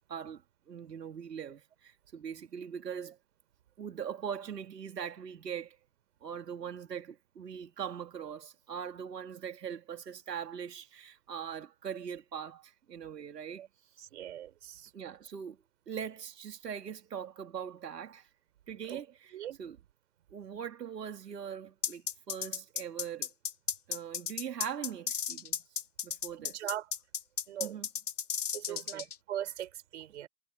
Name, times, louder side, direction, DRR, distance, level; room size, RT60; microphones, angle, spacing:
voice 1, 0.1-3.2 3.8-5.8 6.2-13.7 14.9-15.6 15.9-18.3 18.7-19.8 20.3-23.3 23.9-25.6 26.0-26.6 27.6-27.9 28.7-29.1, right 8 dB, 75° right, 2.9 m, -41 dB
voice 2, 14.1-14.9 18.9-19.0 19.3-19.6 26.4-26.9 27.5-27.8 28.5-30.3, right 11 dB, 45° right, 5.7 m, -40 dB
sound 1, 21.8-29.1, left 8 dB, 65° left, 4.2 m, -34 dB
hypercardioid pair, 165°, 48 cm